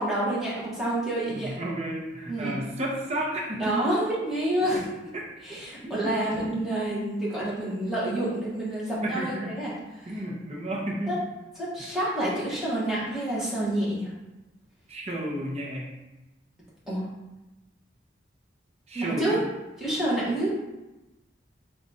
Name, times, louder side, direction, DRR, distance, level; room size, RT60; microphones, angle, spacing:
voice 1, 0.0-1.6 2.3-2.5 3.6-4.8 5.4-10.1 11.1-11.2 11.6-14.1 16.9-17.0 18.9-19.4 19.8-20.5, right 1 dB, ahead, -8 dB, 1.0 m, -28 dB
voice 2, 1.3-3.9 4.7-4.8 5.8-6.1 9.0-9.5 10.1-11.1 11.8-11.9 14.9-16.0 18.9-19.4, right 1 dB, 35° right, -1 dB, 0.6 m, -32 dB
3.8 x 2.3 x 4.0 m, 1.0 s
head